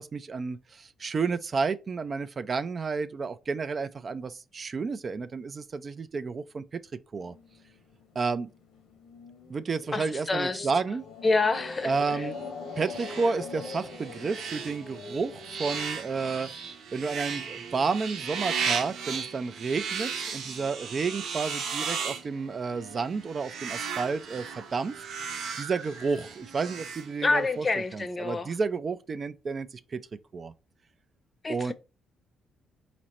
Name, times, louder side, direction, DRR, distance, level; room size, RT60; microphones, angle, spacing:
voice 1, 0.0-6.8 7.1-7.3 8.2-8.5 9.5-11.0 11.8-12.4 12.7-25.0 25.6-30.0 30.3-30.5 31.5-31.7, right 4 dB, 40° right, 0.3 m, -31 dB
sound 1, 7.2-16.4, left 4 dB, 90° left, 1.0 m, -43 dB
voice 2, 9.9-10.7 11.2-11.9 27.2-28.5 31.4-31.7, left 3 dB, 30° left, 0.6 m, -27 dB
sound 2, 11.7-27.6, right 6 dB, 80° right, 0.8 m, -36 dB
5.0 x 2.0 x 4.2 m
cardioid pair, 90°, 0 cm